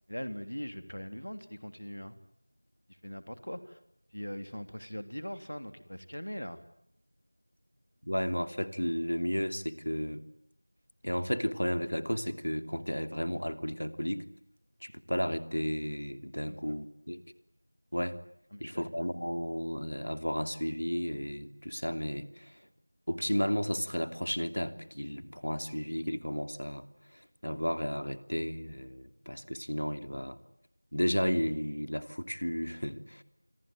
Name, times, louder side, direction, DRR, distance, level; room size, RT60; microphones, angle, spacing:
voice 1, 0.1-2.1 2.9-3.8 4.1-6.6 16.5-16.7 18.5-18.8, equal, 70° left, 10 dB, 3.4 m, -41 dB
voice 2, 8.0-10.2 11.0-14.3 14.8-17.2 17.9-18.2 18.6-22.6 23.1-26.8 27.1-30.4 30.9-33.2, equal, 90° left, 10 dB, 2.9 m, -33 dB
28.0 x 22.5 x 9.3 m, 0.74 s
figure-of-eight pair, 180°, 0 cm